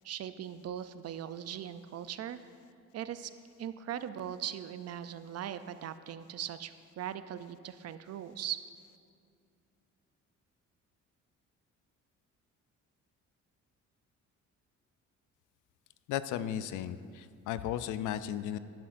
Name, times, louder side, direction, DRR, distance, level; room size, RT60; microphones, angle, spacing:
voice 1, 0.0-2.4 2.9-3.3 3.6-8.6, right 10 dB, 55° right, 12 dB, 0.5 m, -40 dB
voice 2, 16.1-18.6, left 10 dB, 85° left, 13 dB, 0.5 m, -35 dB
11.0 x 10.5 x 2.6 m, 2.4 s
cardioid pair, 90°, 30 cm